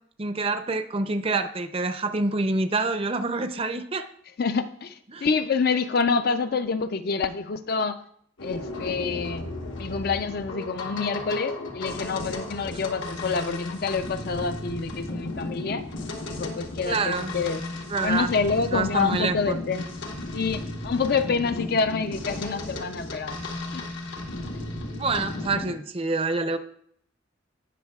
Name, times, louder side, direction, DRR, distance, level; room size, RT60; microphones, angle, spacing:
voice 1, 0.2-4.1 5.1-5.3 16.9-17.3 17.9-18.3 18.7-19.6 24.9-26.6, right 3 dB, 30° right, 9 dB, 0.5 m, -27 dB
voice 2, 4.4-8.0 8.4-9.4 9.8-15.9 16.2-17.6 18.0-19.9 20.3-23.4 23.7-24.0, left 5 dB, 50° left, 10 dB, 0.4 m, -27 dB
sound 1, 8.4-25.7, left 2 dB, 80° left, 1.3 m, -34 dB
17.5 x 6.3 x 2.3 m, 0.65 s
head